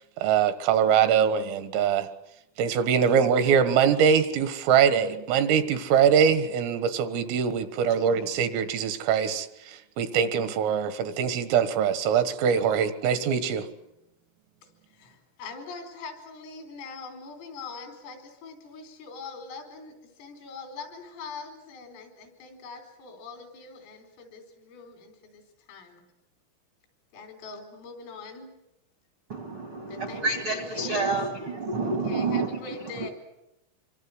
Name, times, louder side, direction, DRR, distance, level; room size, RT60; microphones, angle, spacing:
voice 1, 0.2-2.1 2.6-13.7, right 7 dB, 80° right, 4.1 m, -23 dB
voice 2, 14.9-25.4 25.7-26.0 27.1-28.5 29.9-31.2 32.0-33.1, left 4 dB, 80° left, 6.9 m, -43 dB
voice 3, 29.3-33.1, right 3 dB, 55° right, 1.4 m, -29 dB
25.5 x 24.5 x 7.9 m
omnidirectional pair, 5.8 m